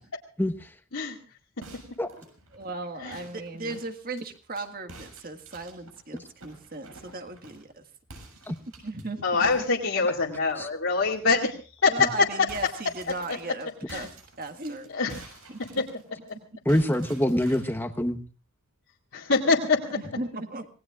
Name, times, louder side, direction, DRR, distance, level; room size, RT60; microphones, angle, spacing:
sound 1, 1.6-4.6 4.9-7.7 8.1-9.0 9.4-11.2 11.6-11.8 12.0-16.3 16.7-17.9, right 2 dB, 85° right, 7.0 m, -49 dB
voice 1, 2.5-7.8 8.8-9.6 11.9-14.1 14.4-14.9 15.5-15.8 19.9-20.7, right 2 dB, 45° right, 6 dB, 1.8 m, -37 dB
voice 2, 9.2-12.5 13.3-13.4 13.9-14.1 14.9-15.2 15.8-15.9 19.1-19.8, left 4 dB, 70° left, -3 dB, 2.2 m, -24 dB
voice 3, 16.7-18.2, equal, 10° left, 8 dB, 1.1 m, -25 dB
26.5 x 19.0 x 2.4 m, 0.36 s
head